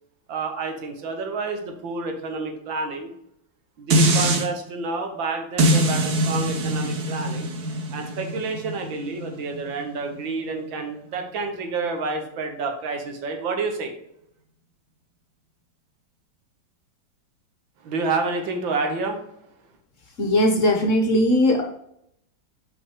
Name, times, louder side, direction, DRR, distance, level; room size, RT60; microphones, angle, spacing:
voice 1, 0.3-3.1 3.8-7.5 7.9-13.9 17.8-19.2, right 3 dB, 80° right, 4 dB, 1.9 m, -29 dB
sound 1, 3.9-4.5 5.6-10.7 11.2-11.3, right 1 dB, 60° right, 1.6 m, -23 dB
voice 2, 20.2-21.6, left 1 dB, 50° left, 2 dB, 1.1 m, -19 dB
5.9 x 5.2 x 4.8 m, 0.76 s
omnidirectional pair, 2.1 m